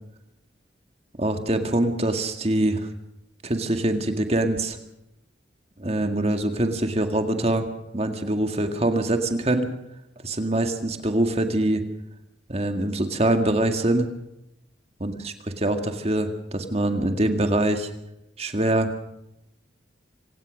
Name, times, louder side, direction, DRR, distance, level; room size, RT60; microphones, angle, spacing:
voice 1, 1.2-2.9 3.4-4.8 5.8-7.7 7.9-9.7 10.2-11.8 12.5-14.1 15.0-17.9 18.4-18.9, right 1 dB, 35° right, 6 dB, 2.0 m, -24 dB
25.5 x 17.5 x 6.4 m, 0.84 s
head